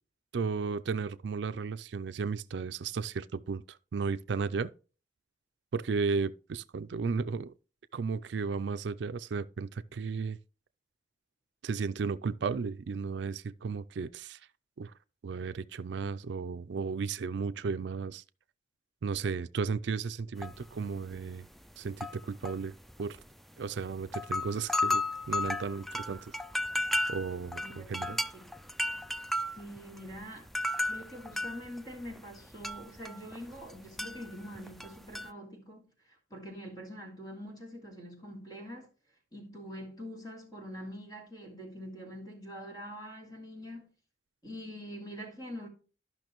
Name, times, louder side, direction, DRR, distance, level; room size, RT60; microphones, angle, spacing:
voice 1, 0.3-4.7 5.7-7.5 7.9-10.4 11.6-14.4 14.8-14.9 15.2-18.2 19.0-21.5 21.8-22.7 23.0-23.2 23.6-26.3 27.1-28.2, right 5 dB, 65° right, 0.4 m, -34 dB
sound 1, 20.4-20.8 21.1-21.3 21.9-23.3 23.8-23.9 24.1-33.7 34.0-35.3, left 1 dB, ahead, 0.3 m, -34 dB
voice 2, 27.6-28.5 29.5-30.5 30.9-38.9 39.3-43.9 44.4-45.7, equal, 20° left, 2.7 m, -44 dB
12.5 x 5.9 x 3.0 m
head